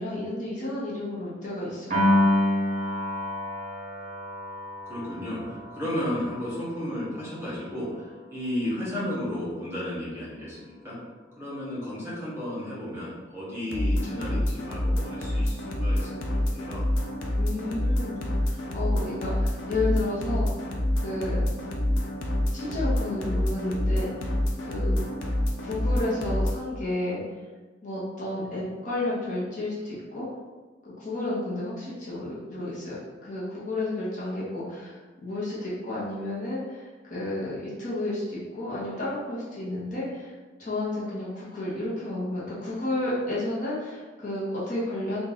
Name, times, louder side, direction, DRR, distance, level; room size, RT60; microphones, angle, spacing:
voice 1, 0.0-2.0 17.4-18.2 18.4-20.5 21.0-21.4 22.5-24.3 24.6-25.0 25.6-27.2 27.8-30.3 30.8-32.9 33.2-40.3 40.6-45.2, left 2 dB, 40° left, -8 dB, 1.1 m, -31 dB
Piano, 1.9-8.3, left 1 dB, 40° right, 1.3 m, -28 dB
voice 2, 4.8-11.0 11.4-16.9 17.8-17.9, left 1 dB, 15° right, -9 dB, 1.2 m, -33 dB
sound 1, 13.7-26.6, left 1 dB, 80° left, 0.6 m, -27 dB
3.1 x 2.6 x 3.9 m, 1.3 s
head